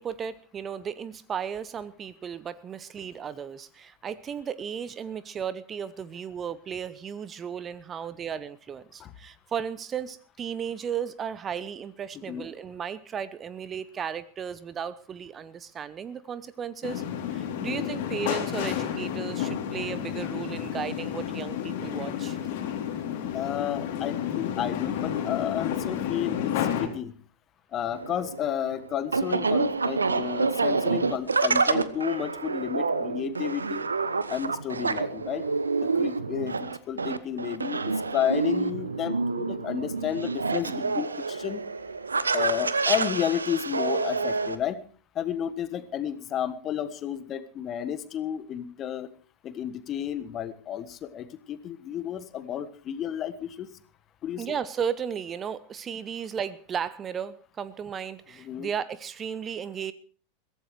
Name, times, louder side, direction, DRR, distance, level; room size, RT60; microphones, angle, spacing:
voice 1, 0.0-17.0 17.3-22.5 28.2-28.3 54.4-59.9, right 7 dB, 25° right, 17 dB, 0.8 m, -35 dB
sound 1, 16.8-26.9, left 9 dB, 50° left, 3.1 m, -31 dB
voice 2, 23.3-27.1 27.7-33.8 34.3-35.4 35.8-36.5 36.9-41.6 42.3-44.8 45.1-49.1 49.4-53.7 54.2-54.4 58.4-58.7, left 10 dB, 30° left, 13 dB, 1.4 m, -32 dB
sound 2, 27.9-44.5, right 4 dB, 75° right, 1.0 m, -28 dB
22.5 x 16.5 x 3.2 m, 0.42 s
figure-of-eight pair, 90°, 0 cm